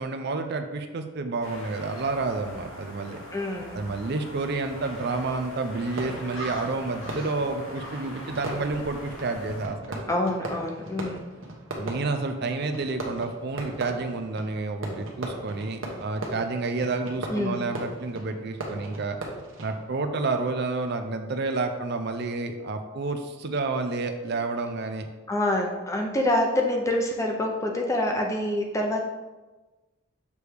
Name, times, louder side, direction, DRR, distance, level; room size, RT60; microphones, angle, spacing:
voice 1, 0.0-3.2 3.7-10.0 11.8-19.2 19.6-25.1, right 3 dB, 50° right, 6 dB, 0.5 m, -30 dB
sound 1, 1.4-9.7, equal, 70° left, 1.3 m, -41 dB
voice 2, 3.3-3.8 10.1-11.2 17.3-17.7 25.3-29.0, left 1 dB, 15° left, 1 dB, 0.7 m, -26 dB
Fireworks, 5.8-20.1, right 2 dB, 70° right, 1.1 m, -38 dB
6.8 x 3.4 x 4.7 m, 1.2 s
head